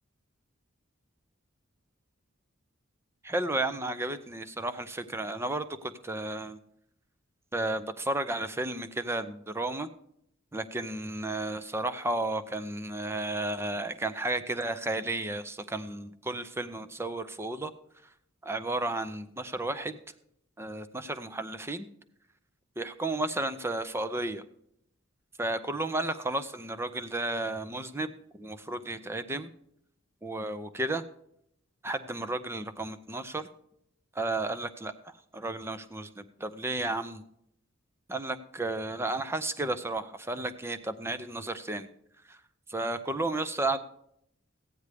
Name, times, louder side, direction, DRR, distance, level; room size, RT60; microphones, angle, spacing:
voice 1, 3.2-6.6 7.5-9.9 10.5-17.7 18.4-20.0 20.6-21.9 22.8-24.4 25.4-29.5 30.2-31.0 31.8-33.5 34.2-37.2 38.1-41.9 42.3-42.4 42.7-43.8, right 2 dB, 10° right, 10 dB, 0.5 m, -33 dB
14.5 x 9.5 x 3.4 m, 0.73 s
head